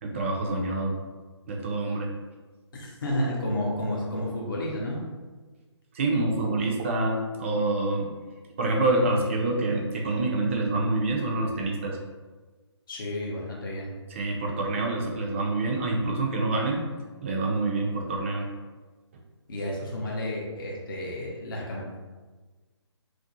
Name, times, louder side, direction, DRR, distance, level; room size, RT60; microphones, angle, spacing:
voice 1, 0.0-1.0 1.5-2.1 5.9-8.1 8.6-12.0 14.1-16.8 17.2-18.5, right 2 dB, 25° right, 0 dB, 0.3 m, -26 dB
voice 2, 2.7-5.0 12.9-13.9 19.5-22.0, left 1 dB, 45° left, -3 dB, 0.6 m, -31 dB
2.5 x 2.1 x 2.6 m, 1.3 s
figure-of-eight pair, 145°, 15 cm